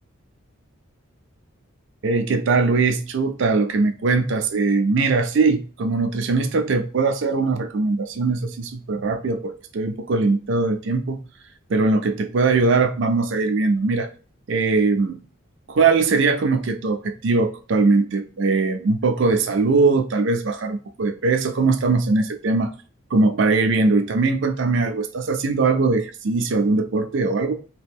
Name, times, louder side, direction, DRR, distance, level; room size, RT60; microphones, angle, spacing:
voice 1, 2.0-11.2 11.7-14.1 14.5-15.2 15.7-22.7 23.1-27.5, right 3 dB, 60° right, 0.4 m, -21 dB
2.9 x 2.4 x 3.4 m
head